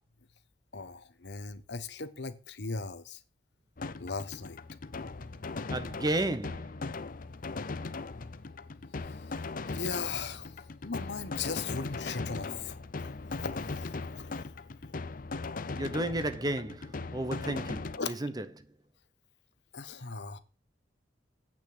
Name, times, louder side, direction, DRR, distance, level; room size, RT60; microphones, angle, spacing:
voice 1, 0.7-3.2 4.0-4.6 9.7-10.5 10.8-12.8 13.3-14.4 18.0-18.2 19.7-20.4, left 5 dB, 70° left, 1.1 m, -38 dB
sound 1, 3.8-18.0, left 3 dB, 50° left, 0.7 m, -39 dB
voice 2, 5.7-6.8 15.7-18.7, right 1 dB, 20° right, 0.9 m, -33 dB
8.9 x 6.1 x 7.8 m
head